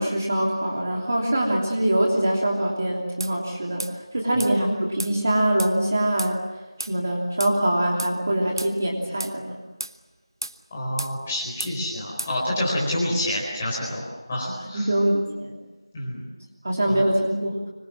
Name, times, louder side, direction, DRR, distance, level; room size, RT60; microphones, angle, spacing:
voice 1, 0.0-6.4 6.9-9.6 14.6-15.6 16.6-17.6, right 1 dB, 30° right, -1 dB, 3.1 m, -23 dB
sound 1, 3.2-3.4 3.8-4.0 4.4-4.5 5.0-5.2 5.6-5.8 6.2-6.3 6.8-7.0 7.4-7.6 8.0-8.1 8.6-8.7 9.2-9.4 9.8-10.0 10.4-10.6 11.0-11.2 11.6-11.8 12.2-12.4, right 1 dB, 50° right, 1.1 m, -33 dB
voice 2, 10.7-14.9 15.9-16.2 16.8-17.1, left 1 dB, 10° left, -6 dB, 4.4 m, -28 dB
25.5 x 24.0 x 7.5 m, 1.2 s
figure-of-eight pair, 180°, 3 cm